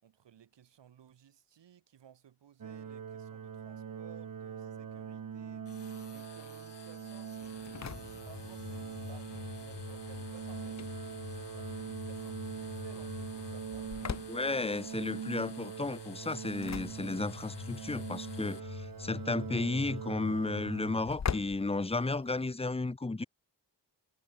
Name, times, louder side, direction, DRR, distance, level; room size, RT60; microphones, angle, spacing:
voice 1, 0.0-7.8 8.2-13.9, right 9 dB, 85° right, 6.6 m, -58 dB
sound 1, 2.6-21.0, right 7 dB, 55° right, 4.8 m, -43 dB
sound 2, 5.6-18.6, left 9 dB, 75° left, 3.8 m, -55 dB
Engine / Slam, 7.4-22.6, left 7 dB, 40° left, 1.7 m, -43 dB
voice 2, 14.3-23.2, left 3 dB, 15° left, 1.6 m, -33 dB
wide cardioid pair, 145°, 42 cm